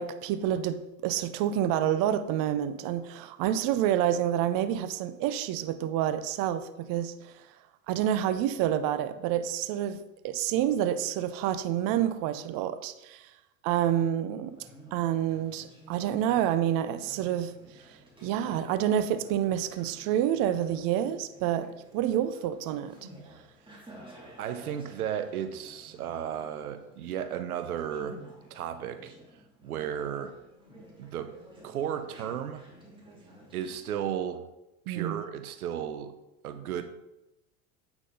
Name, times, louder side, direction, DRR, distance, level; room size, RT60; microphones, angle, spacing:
voice 1, 0.0-7.4 7.9-13.3 13.6-14.6 14.9-17.5 17.9-23.0 34.9-35.2, right 10 dB, 50° right, 0.7 m, -28 dB
Conversation, 14.5-34.2, right 1 dB, 10° right, 2.8 m, -52 dB
voice 2, 24.4-28.2 28.5-29.1 29.6-30.4 31.0-31.4 31.6-32.7 33.5-34.5 34.9-36.1 36.4-36.8, right 9 dB, 85° right, 0.8 m, -34 dB
8.6 x 6.0 x 3.8 m
hypercardioid pair, 90°, 42 cm